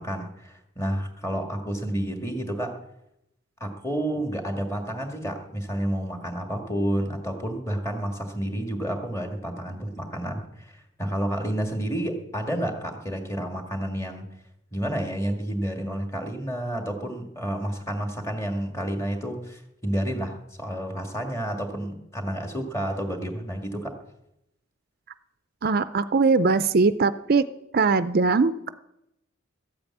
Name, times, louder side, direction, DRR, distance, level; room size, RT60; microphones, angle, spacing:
voice 1, 0.0-2.8 3.6-14.3 14.7-23.9, right 1 dB, 15° left, 4 dB, 1.9 m, -30 dB
voice 2, 25.6-27.4 27.7-28.7, right 4 dB, 50° right, 12 dB, 0.5 m, -21 dB
13.5 x 8.7 x 8.5 m, 0.84 s
head